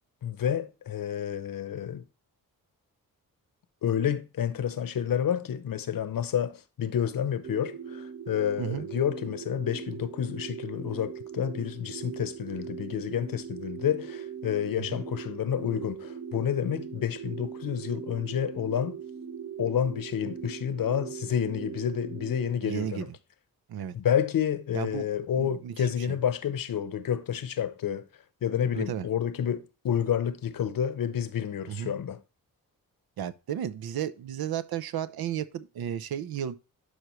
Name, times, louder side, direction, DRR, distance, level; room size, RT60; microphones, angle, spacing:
voice 1, 0.2-2.0 3.8-19.0 19.6-23.1 23.9-28.0 28.4-32.2, left 9 dB, 65° left, 0.9 m, -29 dB
sound 1, 7.4-22.5, right 7 dB, 35° right, 0.6 m, -40 dB
voice 2, 22.6-23.1 23.7-23.9 24.7-25.1 25.4-26.2 28.7-29.1 31.7-31.9 33.2-36.6, right 9 dB, 75° right, 0.7 m, -33 dB
11.5 x 5.0 x 3.1 m
cardioid pair, 70°, 36 cm